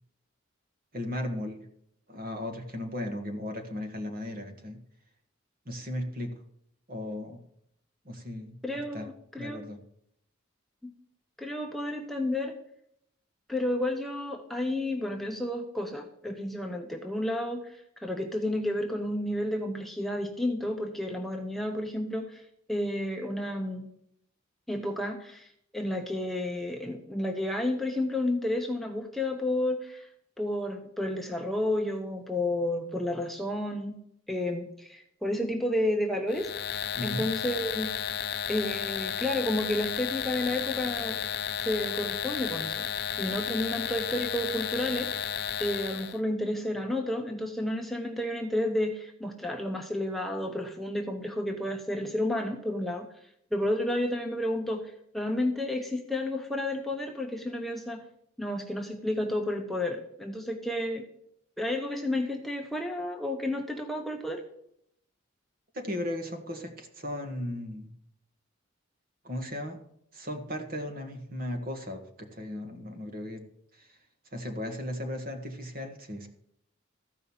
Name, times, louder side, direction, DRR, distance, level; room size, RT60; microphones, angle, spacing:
voice 1, 0.9-1.6 2.1-4.8 5.6-6.3 6.9-7.4 8.0-8.6 8.9-9.1 9.4-9.8 37.0-37.3 65.7-67.9 69.2-69.8 70.1-73.4 73.7-73.9 74.3-76.3, left 1 dB, 45° right, 5 dB, 1.7 m, -36 dB
voice 2, 8.6-9.6 10.8-10.9 11.4-12.6 13.5-22.4 22.7-23.9 24.7-30.1 30.4-34.0 34.3-36.5 37.0-37.9 38.5-41.3 41.6-42.9 43.2-45.1 45.6-53.1 53.5-58.0 58.4-61.0 61.6-64.4, left 1 dB, ahead, 2 dB, 1.0 m, -31 dB
sound 1, 36.3-46.2, left 9 dB, 55° left, 0.6 m, -33 dB
14.0 x 5.4 x 7.2 m, 0.72 s
head